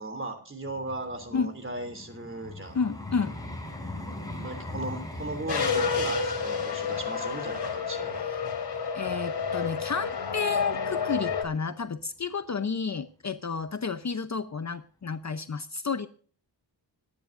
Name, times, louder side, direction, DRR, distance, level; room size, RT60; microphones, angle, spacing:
voice 1, 0.0-2.8 4.4-8.2, right 2 dB, 30° right, 8 dB, 3.1 m, -37 dB
Vehicle, 0.6-9.7 10.3-10.5, left 1 dB, 10° left, 4.8 m, -41 dB
voice 2, 2.7-3.3 8.9-16.1, left 5 dB, 40° left, 10 dB, 0.8 m, -31 dB
sound 1, 5.5-11.4, left 5 dB, 60° left, 3.7 m, -30 dB
25.5 x 10.5 x 2.6 m, 0.43 s
wide cardioid pair, 120°, 44 cm